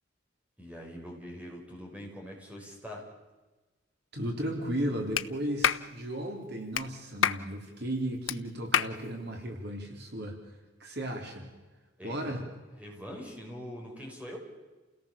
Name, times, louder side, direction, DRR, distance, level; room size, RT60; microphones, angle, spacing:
voice 1, 0.6-3.1 12.0-12.4 12.8-14.4, equal, 10° right, 0 dB, 5.8 m, -43 dB
voice 2, 4.1-10.4 10.8-11.5 12.0-12.4, right 1 dB, 60° right, 2 dB, 4.0 m, -35 dB
Clapping, 5.2-5.3 5.6-5.9 6.7-6.9 7.2-7.4 8.3-8.4 8.7-8.9, left 8 dB, 85° left, 0.8 m, -26 dB
29.5 x 18.0 x 7.2 m, 1.2 s
head